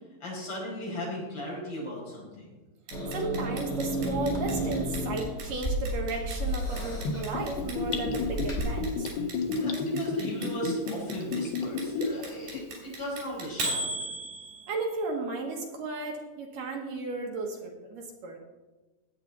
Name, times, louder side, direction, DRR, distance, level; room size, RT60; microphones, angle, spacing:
voice 1, 0.2-2.5 9.6-13.9, equal, 35° left, -5 dB, 6.1 m, -37 dB
Growling / Hiss, 2.9-8.6, right 1 dB, 10° left, 3.6 m, -33 dB
Clock, 2.9-14.9, right 2 dB, 80° right, 6.0 m, -36 dB
voice 2, 3.1-9.1 14.7-18.4, right 3 dB, 65° right, 1 dB, 2.6 m, -34 dB
Gurgling / Bathtub (filling or washing), 7.1-12.2 12.5-12.6, left 4 dB, 75° left, 3.2 m, -31 dB
19.0 x 8.5 x 4.1 m, 1.2 s
omnidirectional pair, 4.9 m